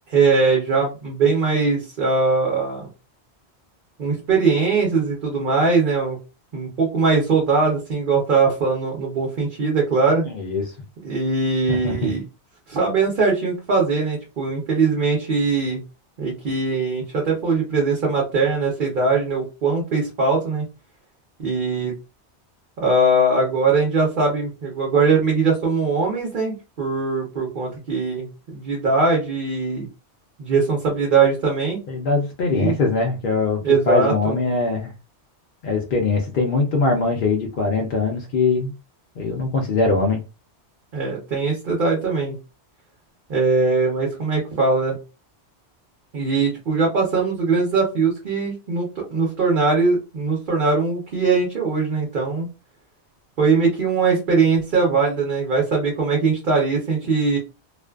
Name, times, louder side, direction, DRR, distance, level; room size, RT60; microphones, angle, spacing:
voice 1, 0.1-2.9 4.0-6.2 6.5-10.2 11.0-12.2 12.7-15.8 16.2-20.6 21.4-21.9 22.8-28.3 28.5-29.9 30.4-31.8 32.5-32.7 33.6-34.4 40.9-42.4 43.3-44.9 46.1-52.5 53.4-57.4, right 4 dB, 55° right, -1 dB, 0.8 m, -21 dB
voice 2, 10.3-10.7 11.7-12.1 31.9-34.9 35.6-38.7 39.2-40.2, left 3 dB, 60° left, 0 dB, 0.6 m, -22 dB
2.4 x 2.3 x 2.3 m, 0.29 s
omnidirectional pair, 1.1 m